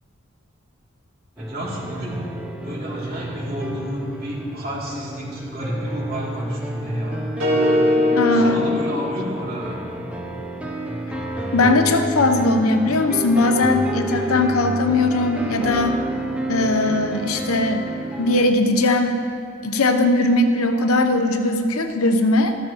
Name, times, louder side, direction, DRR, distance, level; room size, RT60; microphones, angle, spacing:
sound 1, 1.4-18.5, right 1 dB, 5° right, 0.7 m, -30 dB
voice 1, 1.4-2.2 2.6-9.8, equal, 45° right, -6 dB, 2.9 m, -31 dB
sound 2, 7.4-9.7, left 1 dB, 65° right, 2.3 m, -21 dB
voice 2, 8.1-8.7 11.5-16.0 16.5-17.9 18.2-19.2 19.6-22.5, left 2 dB, 80° left, 6 dB, 0.9 m, -19 dB
13.5 x 13.5 x 3.1 m, 2.5 s
head